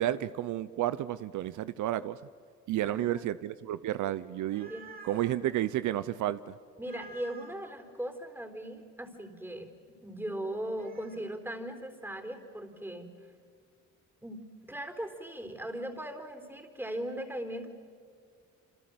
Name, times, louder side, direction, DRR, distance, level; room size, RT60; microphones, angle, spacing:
voice 1, 0.0-2.2 2.7-4.7 5.0-6.6, right 13 dB, 75° right, 15 dB, 0.7 m, -31 dB
voice 2, 2.8-3.4 4.7-4.9 5.4-5.5 6.8-13.1 14.2-17.7, right 1 dB, 5° right, 6 dB, 4.0 m, -39 dB
sound 1, 4.2-5.4 6.8-7.7 10.5-11.3, right 3 dB, 30° right, 4.6 m, -51 dB
27.5 x 26.5 x 7.9 m, 2.2 s
cardioid pair, 90°, 30 cm